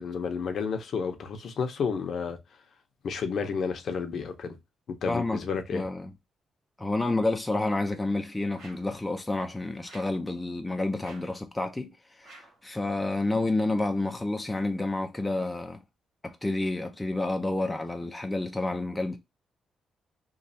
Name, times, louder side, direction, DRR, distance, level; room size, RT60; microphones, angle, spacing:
voice 1, 0.0-2.4 3.0-4.6 5.0-5.8, left 5 dB, 60° left, 0.7 m, -31 dB
voice 2, 5.1-5.4 5.7-6.1 6.8-11.9 12.2-15.8 16.2-19.2, left 2 dB, 10° left, 0.4 m, -29 dB
sound 1, 8.5-9.0 9.8-10.3 11.0-11.4 12.2-12.6, right 2 dB, 90° right, 1.3 m, -51 dB
3.1 x 2.3 x 2.7 m
cardioid pair, 130°, 0 cm